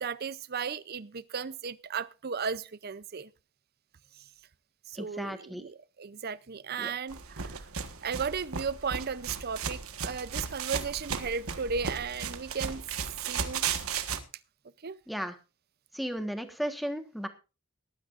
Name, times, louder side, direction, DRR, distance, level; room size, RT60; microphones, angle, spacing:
voice 1, 0.0-3.3 4.9-7.7 8.0-12.8 13.2-13.6 14.8-15.0, right 6 dB, 45° right, 0.6 m, -35 dB
voice 2, 5.0-5.7 6.8-6.9 15.1-15.3 15.9-17.3, equal, ahead, 1.4 m, -35 dB
sound 1, 7.1-14.2, right 6 dB, 80° right, 1.4 m, -35 dB
18.5 x 12.0 x 2.5 m
head